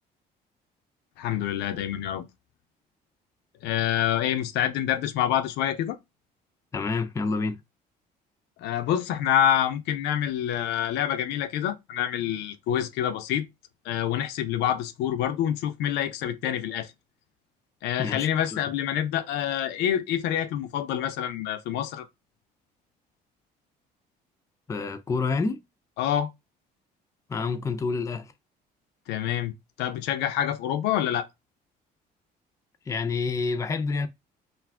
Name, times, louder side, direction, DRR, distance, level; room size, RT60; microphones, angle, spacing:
voice 1, 1.2-2.2 3.6-6.0 8.6-13.4 13.8-16.9 17.8-22.1 26.0-26.3 29.1-31.3, left 10 dB, 85° left, 0.4 m, -27 dB
voice 2, 6.7-7.6 18.0-18.3 24.7-25.6 27.3-28.3 32.9-34.1, left 4 dB, 20° left, 0.4 m, -28 dB
2.4 x 2.3 x 3.3 m
cardioid pair, 110°, 17 cm